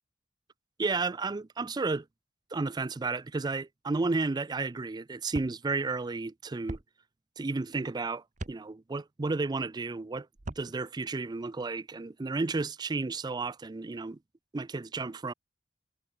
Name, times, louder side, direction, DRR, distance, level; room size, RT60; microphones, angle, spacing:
voice 1, 0.8-2.1 2.5-6.8 7.4-10.3 10.6-14.2 14.5-15.3, right 3 dB, 20° right, 0.4 m, -32 dB
sound 1, 5.3-5.5 6.7-6.8 8.4-8.6 10.3-10.7, right 2 dB, 40° right, 1.1 m, -38 dB
head